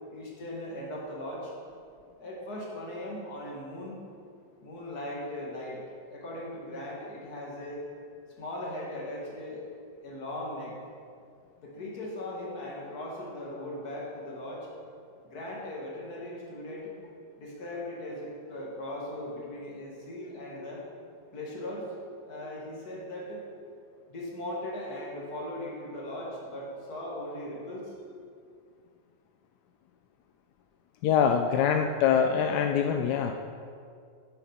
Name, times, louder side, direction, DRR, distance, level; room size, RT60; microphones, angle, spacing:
voice 1, 0.1-1.5 2.2-4.0 4.6-7.8 8.4-9.7 10.0-10.8 11.6-14.7 15.2-16.9 17.4-20.8 21.3-21.9 22.2-23.5 24.1-27.9, left 1 dB, 55° left, -3 dB, 2.3 m, -38 dB
voice 2, 31.0-33.3, left 7 dB, 75° left, 5 dB, 1.0 m, -24 dB
9.0 x 7.5 x 5.7 m, 2.3 s
omnidirectional pair, 2.0 m